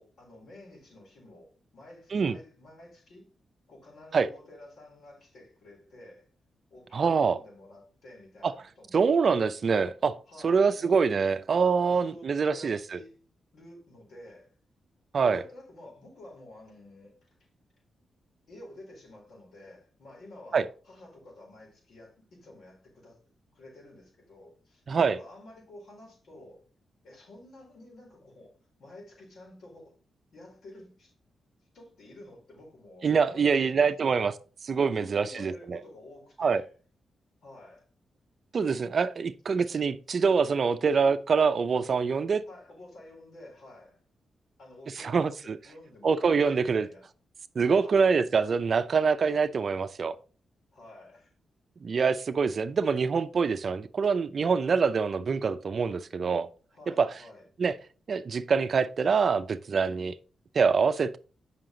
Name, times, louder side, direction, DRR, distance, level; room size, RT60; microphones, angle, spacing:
voice 1, 0.0-3.3 3.7-6.3 6.7-9.2 10.3-11.1 11.9-13.2 13.5-14.5 15.2-17.5 18.5-23.2 23.5-26.6 27.0-29.9 30.3-31.1 31.7-34.1 35.0-36.7 37.4-37.9 42.5-44.0 44.6-47.1 47.7-48.1 50.7-51.3 56.7-57.5, left 1 dB, 75° left, 4.0 m, -50 dB
voice 2, 6.9-7.4 8.4-8.5 8.9-10.1 10.4-13.0 15.1-15.4 20.5-20.6 24.9-25.2 33.0-34.3 34.6-35.8 36.4-36.6 38.5-42.4 45.0-45.6 46.0-46.9 47.6-50.2 51.8-56.5 57.0-57.1 57.6-57.7 58.1-60.1 60.5-61.2, right 5 dB, 55° right, 0.5 m, -25 dB
7.5 x 5.8 x 3.8 m
cardioid pair, 85°, 0 cm